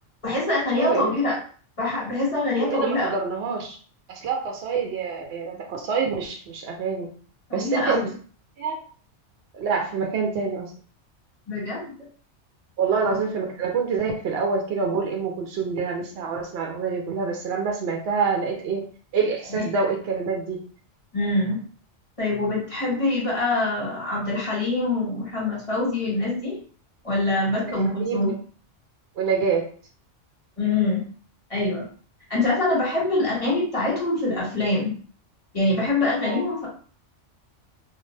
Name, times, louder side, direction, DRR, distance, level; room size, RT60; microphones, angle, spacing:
voice 1, 0.2-1.4 1.8-3.2 7.5-8.1 11.5-11.9 19.5-19.7 21.1-21.6 22.2-26.6 27.0-28.3 30.6-31.0 31.5-31.9 32.3-34.9 35.5-36.7, left 2 dB, 30° left, -7 dB, 1.6 m, -24 dB
voice 2, 0.8-1.1 2.6-3.8 4.1-7.1 7.5-8.0 8.6-8.8 9.5-10.7 12.8-18.8 19.1-20.6 27.9-28.3 29.2-29.7 36.2-36.4, right 5 dB, 65° right, 1 dB, 0.8 m, -26 dB
2.6 x 2.1 x 3.2 m, 0.43 s
omnidirectional pair, 1.2 m